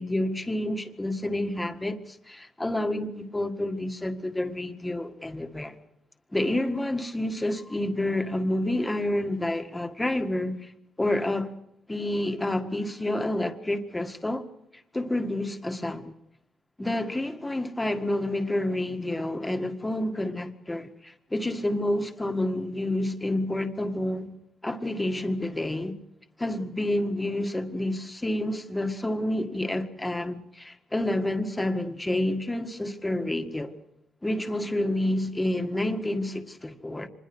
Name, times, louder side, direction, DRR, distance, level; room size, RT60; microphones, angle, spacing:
voice 1, 0.0-5.8 6.3-10.7 11.0-11.5 11.9-14.5 14.9-16.1 16.8-24.3 24.6-25.9 26.4-33.7 34.2-37.1, left 1 dB, 10° left, 1.8 m, -29 dB
25.5 x 21.0 x 6.3 m
cardioid pair, 90°, 0 cm